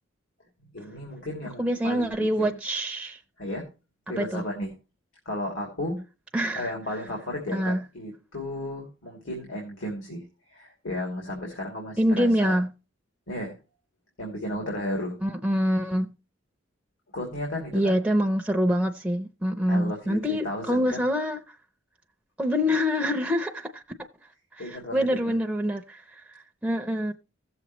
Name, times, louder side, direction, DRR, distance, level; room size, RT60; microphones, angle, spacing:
voice 1, 0.7-2.6 3.4-3.7 4.1-4.7 5.2-6.0 6.5-10.2 10.5-12.6 13.3-13.6 14.2-15.2 17.1-17.9 19.7-21.0 24.6-25.3, left 1 dB, 80° left, 2.8 m, -34 dB
voice 2, 1.6-3.2 4.2-4.4 6.3-6.7 7.5-7.8 12.0-12.7 15.2-16.1 17.7-21.4 22.4-23.8 24.6-27.1, equal, 5° right, 0.6 m, -25 dB
16.0 x 7.1 x 3.1 m
head